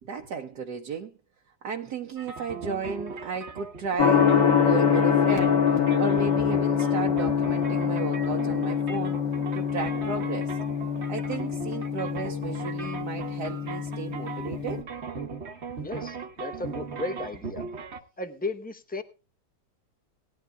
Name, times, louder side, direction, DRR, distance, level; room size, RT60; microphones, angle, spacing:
voice 1, 0.0-1.1 1.6-9.2 9.5-10.6 11.1-14.8, right 5 dB, 65° right, 1.4 m, -34 dB
sound 1, 2.2-18.0, right 5 dB, 40° right, 1.3 m, -39 dB
Gong, 4.0-14.8, left 7 dB, 90° left, 2.2 m, -25 dB
voice 2, 15.8-17.6 18.2-19.0, left 2 dB, 10° left, 0.4 m, -35 dB
18.5 x 12.0 x 2.3 m
omnidirectional pair, 1.9 m